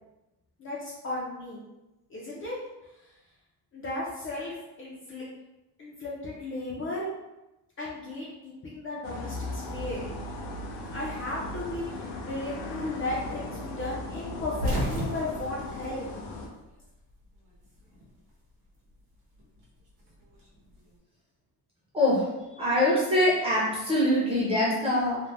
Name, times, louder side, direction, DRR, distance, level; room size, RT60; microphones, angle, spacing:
voice 1, 0.6-1.6 2.1-2.6 3.7-5.3 5.8-7.1 7.8-10.1 10.9-16.1, left 2 dB, 30° left, -6 dB, 0.4 m, -35 dB
sound 1, 9.0-16.5, left 1 dB, 80° left, 0.6 m, -37 dB
sound 2, 14.3-16.8 17.1-18.2 19.4-20.8, equal, 90° right, 0.9 m, -33 dB
voice 2, 22.6-25.2, left 1 dB, 15° right, -6 dB, 0.6 m, -23 dB
2.5 x 2.0 x 3.2 m, 1.0 s
cardioid pair, 170°, 40 cm